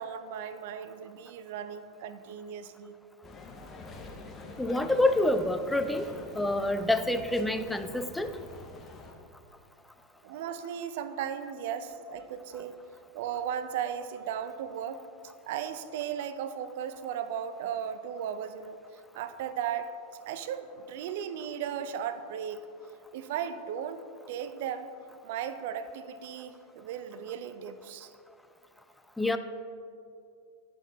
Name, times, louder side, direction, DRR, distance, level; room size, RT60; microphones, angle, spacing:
voice 1, 0.0-3.0 10.2-12.8 13.1-15.0 15.4-18.8 19.1-19.9 20.3-22.7 23.1-24.0 24.3-24.9 25.2-28.1, right 8 dB, 60° right, 11 dB, 0.4 m, -36 dB
sound 1, 3.2-9.1, left 2 dB, 20° left, 0.8 m, -46 dB
voice 2, 4.6-8.3 29.2-29.4, left 1 dB, 5° left, 9 dB, 0.4 m, -27 dB
9.0 x 4.5 x 3.9 m, 2.4 s
hypercardioid pair, 100°, 0 cm